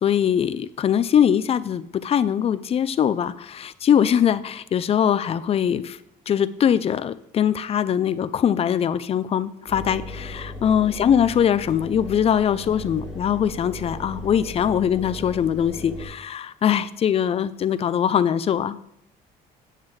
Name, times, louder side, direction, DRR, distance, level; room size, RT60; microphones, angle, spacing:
voice 1, 0.0-6.0 6.3-18.8, left 9 dB, 35° left, 15 dB, 0.4 m, -22 dB
Engine, 9.7-16.1, left 2 dB, ahead, 3.1 m, -37 dB
8.2 x 7.3 x 3.2 m, 0.76 s
cardioid pair, 110°, 17 cm